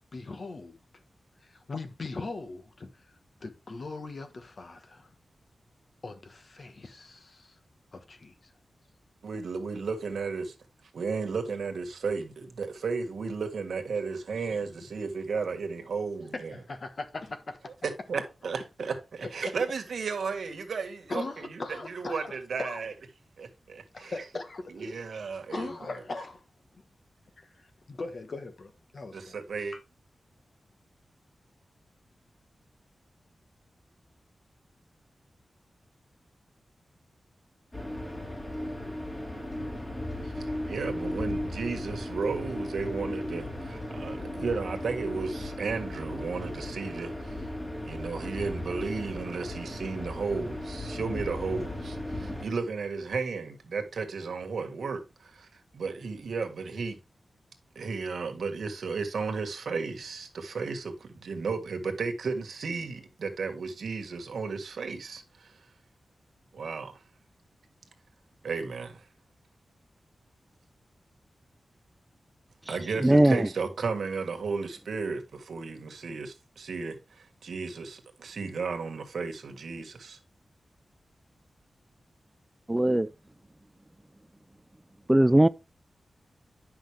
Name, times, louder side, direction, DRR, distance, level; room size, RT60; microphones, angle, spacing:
voice 1, 0.1-0.8 1.4-2.9 3.4-5.1 6.0-7.6 7.9-8.3 14.5-14.6 16.3-17.7 21.1-22.3 22.6-22.8 23.9-24.8 25.5-26.4 27.4-29.4 29.7-29.8, left 3 dB, 45° left, 1.3 m, -39 dB
voice 2, 9.2-10.5 10.9-16.5 17.8-22.9 23.4-24.1 24.7-25.7 29.1-29.8 40.2-47.5 47.8-55.5 55.7-57.0 57.7-65.6 66.5-67.0 68.4-69.0 72.7-80.2, right 4 dB, 85° right, 1.6 m, -34 dB
sound 1, 37.7-52.4, left 1 dB, 20° left, 2.3 m, -36 dB
voice 3, 73.0-73.5 82.7-83.1 85.1-85.5, right 1 dB, 10° right, 0.3 m, -20 dB
10.0 x 5.8 x 3.4 m
wide cardioid pair, 135°, 0 cm